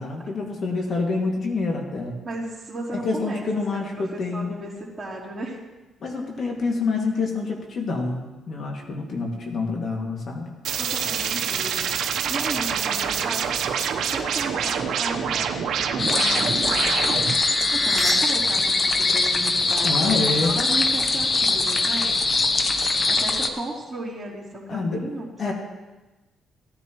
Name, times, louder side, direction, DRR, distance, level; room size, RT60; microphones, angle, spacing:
voice 1, 0.0-2.2 2.9-4.6 6.0-10.5 19.8-20.6 24.7-25.0 25.4-25.5, left 3 dB, 55° left, 0 dB, 2.2 m, -27 dB
voice 2, 2.2-3.4 3.7-5.6 10.8-13.6 14.1-17.1 17.7-22.1 23.1-25.5, right 2 dB, 20° right, -10 dB, 3.3 m, -35 dB
sound 1, 10.6-17.4, right 7 dB, 75° right, 0.9 m, -26 dB
sound 2, 15.9-18.1, left 1 dB, 15° left, 2.7 m, -30 dB
sound 3, 16.0-23.5, left 3 dB, 35° left, 1.0 m, -22 dB
17.5 x 10.0 x 3.1 m, 1.1 s
cardioid pair, 90°, 0 cm